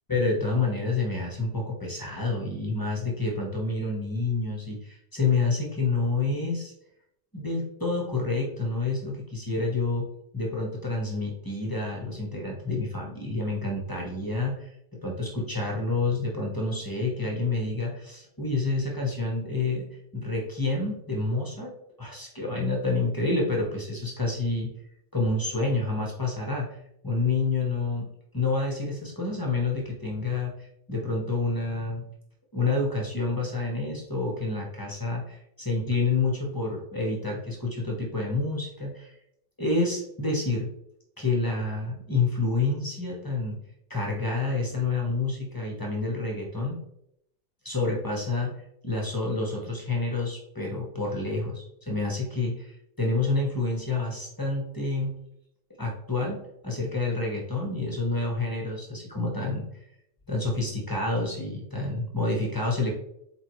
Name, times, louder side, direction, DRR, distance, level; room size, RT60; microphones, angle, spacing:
voice 1, 0.1-6.7 7.3-10.1 10.3-14.7 15.0-19.9 20.1-24.7 25.1-26.7 27.0-28.1 28.3-30.5 30.9-32.1 32.5-39.1 39.6-40.7 41.2-43.6 43.9-46.8 47.6-48.5 48.8-52.7 53.0-55.1 55.8-59.7 60.3-62.9, left 3 dB, 15° left, -1 dB, 1.0 m, -28 dB
7.9 x 3.9 x 3.2 m, 0.77 s
omnidirectional pair, 1.9 m